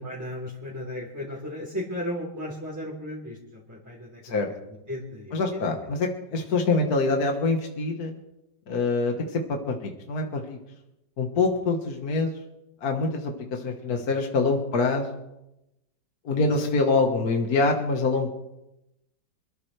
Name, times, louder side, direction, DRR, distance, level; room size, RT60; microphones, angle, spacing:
voice 1, 0.0-4.2 4.7-5.6 13.9-14.0 16.5-16.7, left 1 dB, 10° right, -6 dB, 3.5 m, -35 dB
voice 2, 5.3-8.1 8.7-10.6 11.2-12.3 12.8-15.3 16.3-18.3, left 3 dB, 60° left, 2 dB, 1.9 m, -25 dB
26.5 x 13.5 x 3.3 m, 0.90 s
omnidirectional pair, 1.9 m